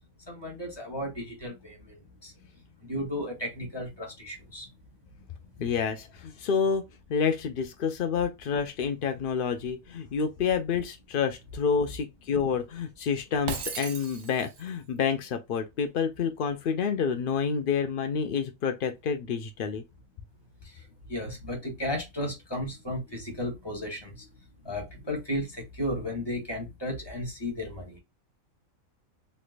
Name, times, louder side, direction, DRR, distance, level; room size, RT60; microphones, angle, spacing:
voice 1, 0.3-2.3 2.8-4.7 20.6-20.8 21.1-24.3 24.6-28.0, left 1 dB, 20° left, 1.5 m, -34 dB
voice 2, 5.6-19.8, left 6 dB, 85° left, 0.4 m, -28 dB
Shatter, 13.5-14.7, right 5 dB, 65° right, 1.1 m, -36 dB
3.2 x 3.0 x 2.4 m
omnidirectional pair, 1.5 m